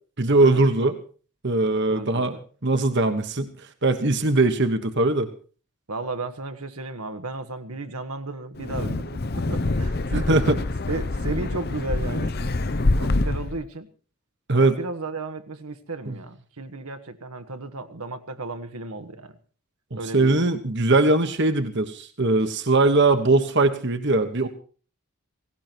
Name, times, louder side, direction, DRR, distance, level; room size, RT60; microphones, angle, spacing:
voice 1, 0.2-1.0 1.4-2.3 2.6-5.3 10.1-10.6 14.5-14.8 19.9-24.5, right 2 dB, 50° right, 8 dB, 1.4 m, -21 dB
voice 2, 1.9-2.4 5.9-10.4 10.9-12.5 13.0-13.9 14.6-19.4 19.9-20.5, right 3 dB, 80° right, 7 dB, 1.6 m, -34 dB
Wind, 8.5-13.6, left 2 dB, 45° left, 0.7 m, -25 dB
17.5 x 17.5 x 4.6 m, 0.40 s
head